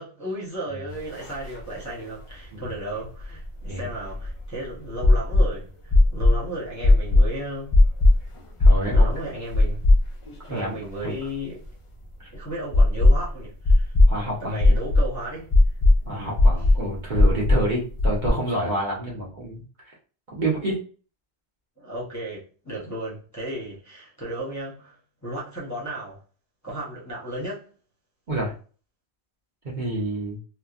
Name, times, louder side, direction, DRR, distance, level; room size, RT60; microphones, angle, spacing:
voice 1, 0.0-7.8 8.8-9.8 10.4-11.6 12.3-13.9 14.2-15.5 16.0-16.4 19.1-19.2 21.8-26.2 26.6-27.7, right 1 dB, 15° left, 0.9 m, -34 dB
sound 1, 1.2-1.3 1.5-1.6 3.2-4.4 5.0-5.5 5.9-6.4 6.8-7.3 7.7-8.2 8.6-9.1 9.5-10.3 10.6-10.7 12.7-13.3 13.6-14.1 14.6-15.1 15.5-16.0 16.4-16.8 17.1-17.6 18.0-18.3, left 2 dB, 50° left, 0.4 m, -16 dB
voice 2, 8.6-9.1 10.5-10.8 11.0-11.1 12.2-12.3 14.1-14.6 16.1-19.6 20.3-20.8 28.3-28.5 29.6-30.4, right 1 dB, 45° right, 1.0 m, -28 dB
3.0 x 2.2 x 2.4 m
omnidirectional pair, 1.1 m